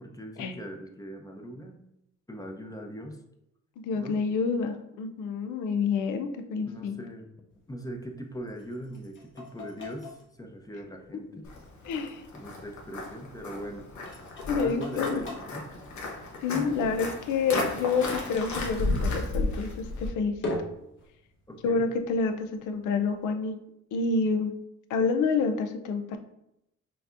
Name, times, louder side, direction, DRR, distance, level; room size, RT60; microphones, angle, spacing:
voice 1, 0.0-1.8 2.3-3.2 3.9-4.2 6.7-7.3 7.7-11.7 12.3-13.9 14.5-15.7 16.5-16.8 21.5-21.8, equal, 10° left, 2 dB, 0.6 m, -41 dB
voice 2, 3.8-7.0 11.3-11.4 11.8-12.2 14.5-15.2 16.4-20.3 21.6-23.6 23.9-24.5 24.9-26.2, left 4 dB, 90° left, 7 dB, 0.5 m, -28 dB
sound 1, 7.5-23.3, left 1 dB, 40° left, 1.0 m, -45 dB
Walk footsteps, 11.5-20.1, left 2 dB, 70° left, 1.1 m, -34 dB
5.7 x 2.7 x 2.5 m, 0.83 s
cardioid pair, 90°, 30 cm